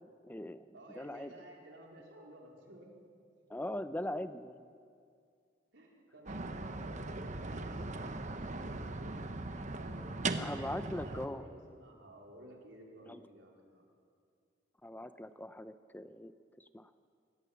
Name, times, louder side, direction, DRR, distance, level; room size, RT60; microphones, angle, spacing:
voice 1, 0.0-1.3 3.5-4.7 10.4-11.4 13.1-13.2 14.8-16.3 16.6-16.9, left 1 dB, 10° left, 11 dB, 0.6 m, -41 dB
voice 2, 0.7-2.9 5.7-9.2 9.7-13.8, right 1 dB, 70° right, -1 dB, 4.1 m, -53 dB
sound 1, 6.3-11.3, right 2 dB, 40° right, 1.1 m, -39 dB
24.0 x 18.0 x 7.1 m, 2.3 s
head